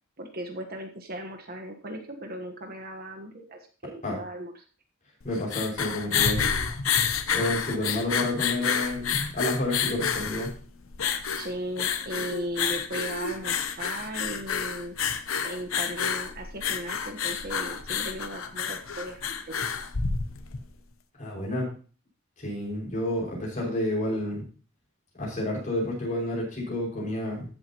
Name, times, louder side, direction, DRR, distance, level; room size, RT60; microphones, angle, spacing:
voice 1, 0.2-4.6 11.3-15.0 15.4-19.7, right 1 dB, 45° right, 4 dB, 1.3 m, -37 dB
sound 1, 5.2-20.7, left 7 dB, 80° left, 0.9 m, -29 dB
voice 2, 5.2-6.4 7.3-10.5 21.2-21.7 22.4-24.5 25.2-27.5, left 1 dB, 40° left, -4 dB, 5.7 m, -30 dB
15.0 x 7.8 x 3.0 m, 0.39 s
head